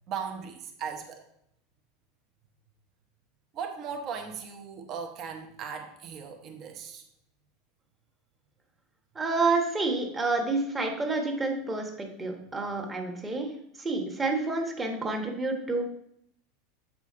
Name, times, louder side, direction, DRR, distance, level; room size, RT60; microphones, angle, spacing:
voice 1, 0.1-1.2 3.5-7.0, right 6 dB, 40° right, 4 dB, 1.0 m, -37 dB
voice 2, 9.2-13.5 13.8-15.8, right 3 dB, 15° right, 3 dB, 1.1 m, -29 dB
7.6 x 5.0 x 3.7 m, 0.74 s
supercardioid pair, 145°, 0 cm